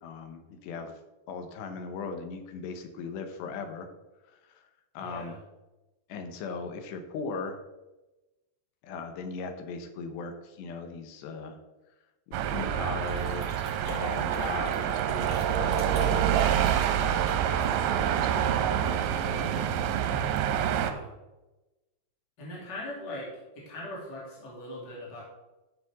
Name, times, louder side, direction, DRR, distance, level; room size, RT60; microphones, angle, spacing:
voice 1, 0.0-1.0 1.3-3.9 4.3-4.7 4.9-5.4 6.1-7.6 8.8-11.6 12.3-13.5 13.9-19.8, left 4 dB, 85° left, 7 dB, 3.2 m, -39 dB
voice 2, 5.0-5.4 20.6-21.1 22.4-25.2, left 1 dB, 30° left, -5 dB, 3.0 m, -40 dB
sound 1, 12.3-20.9, right 9 dB, 90° right, 2.9 m, -27 dB
sound 2, 13.0-18.0, equal, 10° left, 1.8 m, -46 dB
12.0 x 7.6 x 3.6 m, 1.1 s
omnidirectional pair, 4.8 m